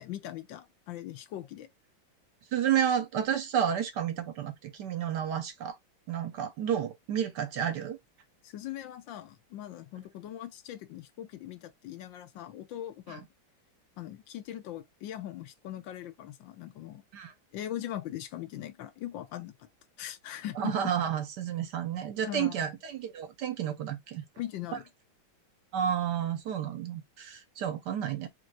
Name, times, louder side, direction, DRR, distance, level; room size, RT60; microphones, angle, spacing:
voice 1, 0.0-1.7 8.4-13.3 14.0-17.0 17.5-19.7 20.0-20.7 22.2-22.6 24.4-24.8, left 12 dB, 75° left, 1.4 m, -40 dB
voice 2, 2.5-5.8 6.1-8.0 13.1-13.2 17.1-17.3 20.6-24.3 25.7-28.3, right 9 dB, 70° right, 1.2 m, -31 dB
4.5 x 3.1 x 2.6 m
omnidirectional pair, 2.1 m